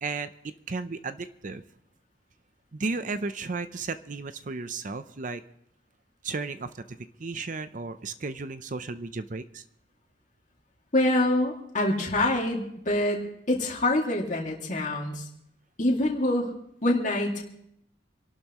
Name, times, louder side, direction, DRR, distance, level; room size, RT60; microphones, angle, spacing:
voice 1, 0.0-1.6 2.7-5.4 6.2-9.6, right 3 dB, 45° right, 11 dB, 0.6 m, -34 dB
voice 2, 10.9-15.2 15.8-16.5 16.8-17.4, left 1 dB, 45° left, -1 dB, 2.3 m, -25 dB
27.0 x 12.0 x 3.0 m, 0.72 s
head